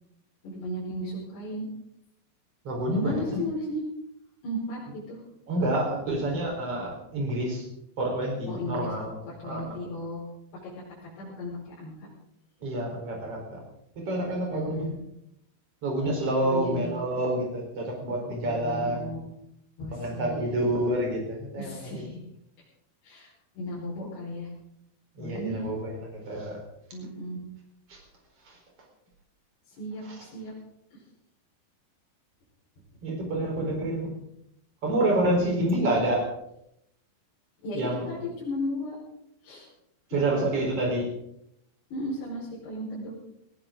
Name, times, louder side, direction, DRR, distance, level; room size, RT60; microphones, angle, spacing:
voice 1, 0.4-1.7 2.9-3.8 4.4-4.8 5.1-5.2 8.5-8.9 9.4-10.2 10.5-10.7 11.0-12.1 14.5-15.0 16.4-16.9 18.4-19.2 19.8-20.6 21.6-22.2 23.0-23.3 23.5-24.5 25.2-25.7 26.9-27.4 29.8-30.5 37.6-38.9 39.4-39.7 40.1-40.9 41.9-43.1, left 1 dB, 60° left, -8 dB, 6.9 m, -35 dB
voice 2, 2.6-3.4 5.5-7.6 8.0-9.2 9.4-9.8 12.6-13.6 14.0-14.9 15.8-19.2 19.9-22.1 25.2-26.6 27.9-28.0 28.4-28.6 33.0-34.1 34.8-36.3 37.7-38.2 40.1-41.1, right 1 dB, 30° right, 0 dB, 5.0 m, -28 dB
19.0 x 17.0 x 3.9 m, 0.77 s
omnidirectional pair, 5.3 m